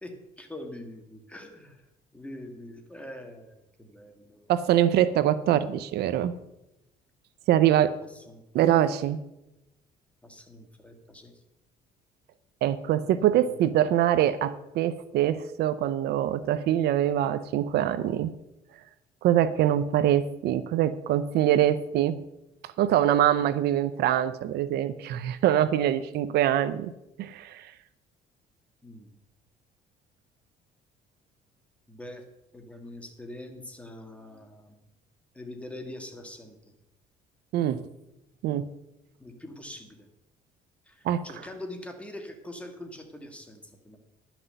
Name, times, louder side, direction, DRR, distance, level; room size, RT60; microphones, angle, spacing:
voice 1, 0.0-1.8 2.1-4.5 8.1-8.4 10.2-11.3 13.0-13.6 28.8-29.1 31.9-32.2 32.5-34.8 35.3-36.6 39.2-40.1 40.9-44.0, left 1 dB, 5° left, 4 dB, 1.9 m, -43 dB
voice 2, 4.5-6.3 7.5-7.9 8.5-9.2 12.6-18.3 19.2-22.2 22.8-26.9 27.2-27.7 37.5-37.8 38.4-38.7 41.0-41.2, right 11 dB, 75° right, 14 dB, 0.6 m, -24 dB
11.0 x 6.0 x 7.9 m, 0.91 s
cardioid pair, 110°, 17 cm